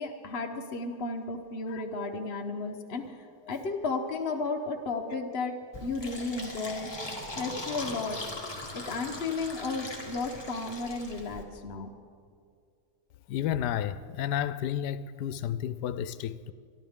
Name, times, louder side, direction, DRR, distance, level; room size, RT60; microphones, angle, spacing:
voice 1, 0.0-5.5 5.8-6.9 7.4-8.2 8.7-11.9, left 3 dB, 45° left, 1.1 m, -33 dB
Fill (with liquid), 5.7-11.4, left 1 dB, 15° left, 1.7 m, -40 dB
voice 2, 13.3-16.5, left 10 dB, 85° left, 1.2 m, -32 dB
26.0 x 11.0 x 3.6 m
omnidirectional pair, 1.7 m